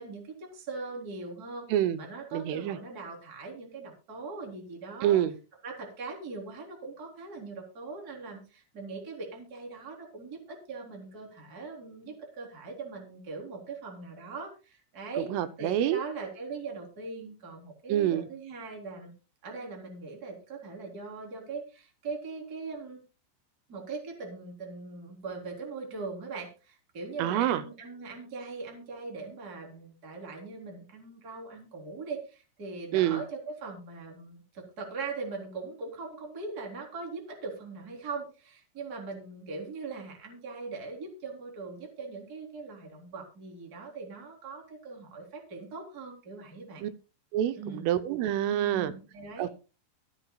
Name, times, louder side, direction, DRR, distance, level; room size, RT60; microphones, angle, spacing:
voice 1, 0.0-1.7 2.0-5.2 5.6-15.3 15.6-19.1 19.4-23.0 23.7-46.9 47.6-47.9 48.5-49.5, right 4 dB, 20° right, 1 dB, 3.4 m, -40 dB
voice 2, 1.7-2.1 2.3-2.8 5.0-5.3 15.3-16.0 17.9-18.3 27.2-27.6 32.9-33.2 46.8-46.9 47.3-48.9 49.4-49.5, right 11 dB, 80° right, 13 dB, 3.2 m, -27 dB
24.0 x 8.1 x 2.3 m, 0.32 s
omnidirectional pair, 5.9 m